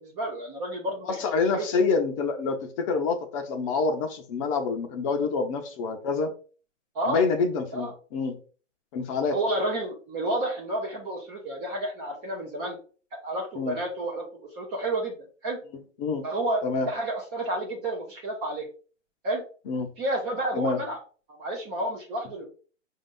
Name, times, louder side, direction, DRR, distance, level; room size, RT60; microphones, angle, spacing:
voice 1, 0.0-1.1 1.5-1.7 6.9-7.2 7.7-7.9 9.3-12.8 13.1-15.1 15.4-15.6 16.2-18.7 19.2-19.4 20.0-21.0 21.4-22.5, right 1 dB, 15° right, -1 dB, 0.4 m, -30 dB
voice 2, 1.0-6.3 7.1-8.3 8.9-9.4 13.6-13.8 16.0-16.3 16.6-16.9 19.7-19.9 20.5-20.8, left 4 dB, 25° left, 6 dB, 0.6 m, -27 dB
5.1 x 2.7 x 3.6 m, 0.39 s
hypercardioid pair, 130°, 37 cm